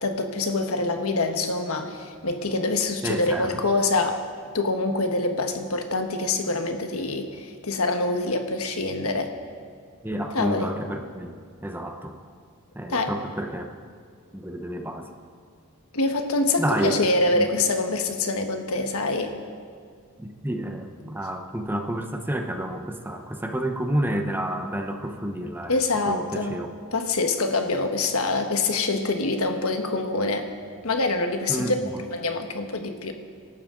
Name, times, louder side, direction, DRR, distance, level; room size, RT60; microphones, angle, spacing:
voice 1, 0.0-4.2 4.5-9.3 10.3-10.7 12.9-13.1 15.9-19.3 25.7-26.6 26.9-30.5 30.8-31.7 32.1-33.1, left 2 dB, 70° left, 5 dB, 1.4 m, -25 dB
voice 2, 3.0-3.6 10.0-11.3 11.6-12.2 12.7-13.7 14.3-15.1 16.6-17.0 17.3-17.6 20.2-25.8 26.1-26.7 31.5-32.0, right 1 dB, 10° right, 4 dB, 0.9 m, -30 dB
27.0 x 12.0 x 3.9 m, 2.1 s
head